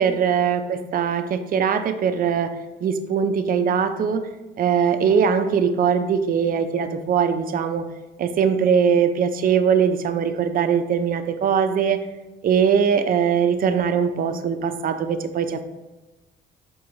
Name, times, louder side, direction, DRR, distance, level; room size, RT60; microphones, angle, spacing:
voice 1, 0.0-4.3 4.6-7.8 8.2-12.1 12.4-15.6, right 7 dB, 45° right, 9 dB, 0.4 m, -21 dB
4.7 x 2.6 x 3.0 m, 1.1 s
cardioid pair, 90°, 20 cm